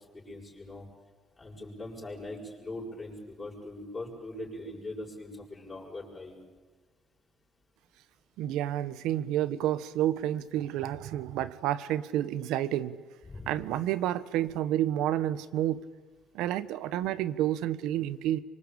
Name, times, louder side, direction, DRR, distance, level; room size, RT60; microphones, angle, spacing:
voice 1, 0.1-0.8 1.4-6.4 13.2-13.5, left 1 dB, 25° left, -6 dB, 6.8 m, -41 dB
voice 2, 8.4-13.0 13.5-15.8 16.3-18.4, right 12 dB, 90° right, 15 dB, 1.2 m, -30 dB
26.5 x 24.5 x 8.7 m, 1.4 s
cardioid pair, 115°, 0 cm